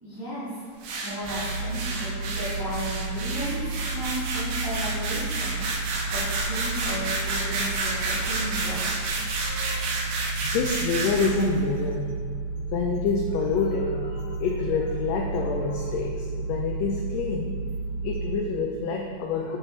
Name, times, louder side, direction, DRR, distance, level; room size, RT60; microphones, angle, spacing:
voice 1, 0.0-5.6 6.1-8.9, equal, 15° right, -12 dB, 0.7 m, -34 dB
sound 1, 0.8-11.5, right 3 dB, 80° right, 2.2 m, -31 dB
sound 2, 1.2-18.4, right 3 dB, 65° right, 1.4 m, -32 dB
voice 2, 9.4-9.9 10.4-12.1 12.7-17.6 18.0-19.6, left 4 dB, 85° left, 1 dB, 1.5 m, -27 dB
6.7 x 6.0 x 3.2 m, 2.1 s
omnidirectional pair, 3.5 m